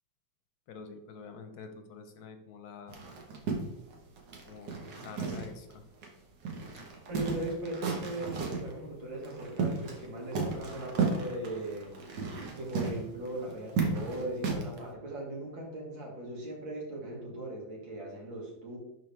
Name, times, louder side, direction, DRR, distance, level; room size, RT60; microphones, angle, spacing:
voice 1, 0.7-3.0 4.5-4.7 5.0-5.8, left 5 dB, 65° left, 7 dB, 1.1 m, -47 dB
sound 1, 2.9-5.7 6.0-6.1 6.4-8.7 9.2-10.1 10.3-14.8, right 4 dB, 70° right, 1.8 m, -34 dB
voice 2, 7.1-12.2 12.6-18.8, right 1 dB, 90° right, -2 dB, 2.8 m, -39 dB
11.5 x 4.1 x 3.4 m, 0.85 s
omnidirectional pair, 2.0 m